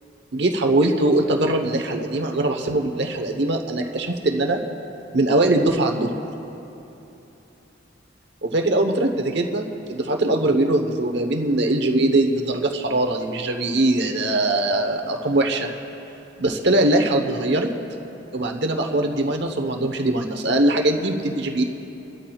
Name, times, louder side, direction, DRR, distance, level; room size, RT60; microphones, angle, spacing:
voice 1, 0.3-4.6 5.1-6.1 8.4-15.7 16.4-17.7 18.3-21.6, right 2 dB, 65° right, 4 dB, 1.0 m, -21 dB
28.5 x 13.0 x 2.4 m, 3.0 s
head